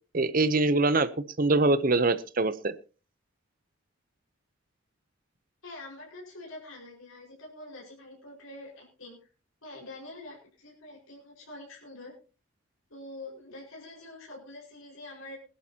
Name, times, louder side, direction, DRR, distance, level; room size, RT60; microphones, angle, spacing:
voice 1, 0.1-1.1 1.4-2.7, right 2 dB, 40° right, 15 dB, 0.7 m, -23 dB
voice 2, 5.6-9.3 9.6-12.1 12.9-15.4, left 2 dB, 80° left, -3 dB, 5.2 m, -45 dB
21.0 x 11.5 x 2.8 m, 0.34 s
head